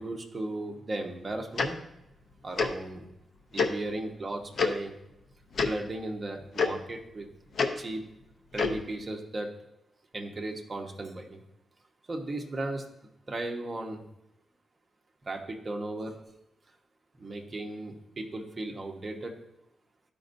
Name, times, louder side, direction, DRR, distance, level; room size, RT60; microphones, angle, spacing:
voice 1, 0.0-1.8 2.4-3.0 3.5-5.0 5.6-7.3 7.8-8.1 8.5-9.5 10.1-11.4 12.1-12.8 13.3-14.0 15.2-16.2 17.2-19.3, right 2 dB, 30° right, 1 dB, 1.0 m, -36 dB
Tick-tock, 1.6-1.7 2.6-2.7 3.6-3.7 4.6-4.7 5.5-5.7 6.6-6.7 7.6-7.7 8.5-8.8, left 4 dB, 60° left, 0.6 m, -25 dB
12.5 x 5.3 x 2.6 m, 0.84 s
wide cardioid pair, 135°, 0 cm